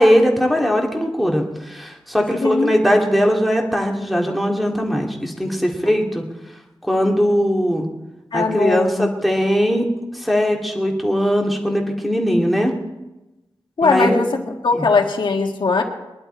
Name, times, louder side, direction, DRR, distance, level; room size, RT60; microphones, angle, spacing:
voice 1, 0.0-6.2 6.8-7.9 8.3-9.9 10.1-12.7 13.8-14.2 14.7-14.9, equal, ahead, 1 dB, 2.1 m, -19 dB
voice 2, 2.2-2.7 8.3-9.1 13.8-15.8, left 4 dB, 65° left, 2 dB, 1.7 m, -20 dB
22.0 x 11.0 x 4.4 m, 1.0 s
wide cardioid pair, 130°, 9 cm